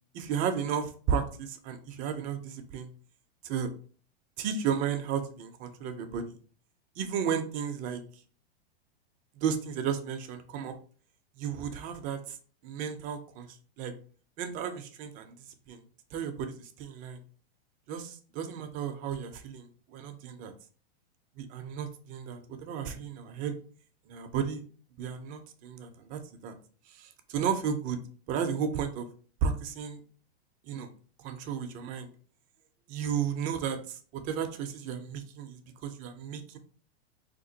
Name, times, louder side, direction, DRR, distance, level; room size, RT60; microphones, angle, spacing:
voice 1, 0.1-2.9 3.4-3.7 4.4-6.4 7.0-8.0 9.3-10.7 11.4-12.4 12.6-13.9 14.4-15.8 16.1-17.2 17.9-20.5 21.4-23.5 24.1-24.6 25.0-26.5 26.9-28.0 28.3-29.1 29.4-30.0 30.6-30.9 31.2-32.1 32.9-36.6, right 7 dB, 25° right, 7 dB, 0.4 m, -33 dB
3.7 x 2.8 x 2.6 m, 0.42 s
hypercardioid pair, 130°, 32 cm